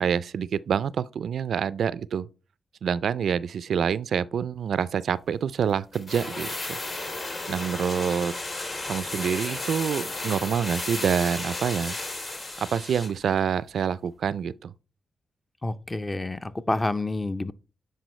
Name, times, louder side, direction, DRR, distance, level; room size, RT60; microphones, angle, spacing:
voice 1, 0.0-2.3 2.8-6.8 7.5-8.3 8.9-12.0 12.6-14.7, right 7 dB, 75° right, 0.3 m, -27 dB
sound 1, 5.9-13.2 13.5-13.6, left 2 dB, 45° left, 2.1 m, -33 dB
voice 2, 15.6-17.5, left 2 dB, 20° left, 0.5 m, -28 dB
9.1 x 4.5 x 3.1 m
cardioid pair, 65°, 0 cm